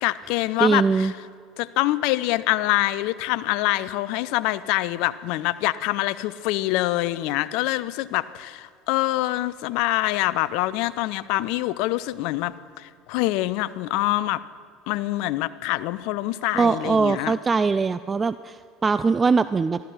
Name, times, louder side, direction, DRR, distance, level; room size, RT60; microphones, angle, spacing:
voice 1, 0.0-1.1 1.6-14.4 14.9-17.3, left 17 dB, 65° left, 17 dB, 0.4 m, -25 dB
voice 2, 0.6-1.1 16.5-19.8, right 4 dB, 25° right, 14 dB, 0.3 m, -21 dB
14.0 x 12.5 x 5.7 m, 2.1 s
hypercardioid pair, 75°, 0 cm